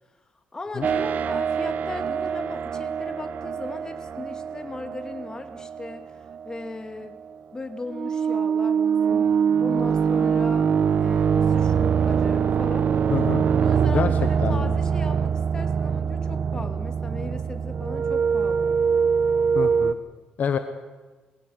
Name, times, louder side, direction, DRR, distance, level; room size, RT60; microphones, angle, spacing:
voice 1, 0.5-6.0 6.5-7.2 7.5-9.3 9.6-12.9 13.4-18.7, left 2 dB, 20° left, 7 dB, 2.2 m, -37 dB
sound 1, 0.8-6.7 7.9-19.9, right 7 dB, 50° right, 0.9 m, -23 dB
voice 2, 13.1-13.5 13.9-14.1 14.4-14.8 19.5-20.0 20.4-20.6, left 7 dB, 50° left, 8 dB, 1.3 m, -26 dB
21.0 x 16.5 x 9.5 m, 1.3 s
cardioid pair, 120°, 3 cm